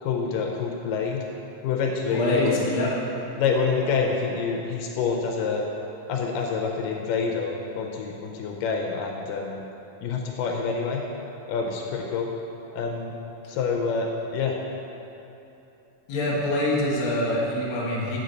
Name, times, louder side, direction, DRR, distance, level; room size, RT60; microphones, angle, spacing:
voice 1, 0.0-1.2 1.6-2.7 3.4-5.7 6.1-9.7 10.0-11.0 11.5-12.3 12.7-13.1 13.5-14.6, left 5 dB, 80° left, 1 dB, 2.1 m, -27 dB
voice 2, 2.1-2.9 16.1-18.2, left 1 dB, 50° left, -4 dB, 1.7 m, -25 dB
7.6 x 6.9 x 4.0 m, 3.0 s
omnidirectional pair, 3.9 m